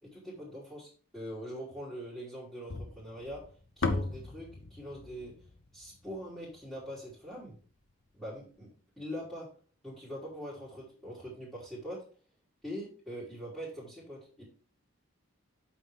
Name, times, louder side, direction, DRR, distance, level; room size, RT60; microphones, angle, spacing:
voice 1, 0.0-3.5 3.8-5.3 5.7-7.6 8.1-8.7 9.0-9.5 9.8-12.0 12.6-14.4, equal, ahead, -9 dB, 3.2 m, -43 dB
sound 1, 2.7-7.0, left 3 dB, 60° left, 0.9 m, -37 dB
8.6 x 5.5 x 3.5 m, 0.40 s
head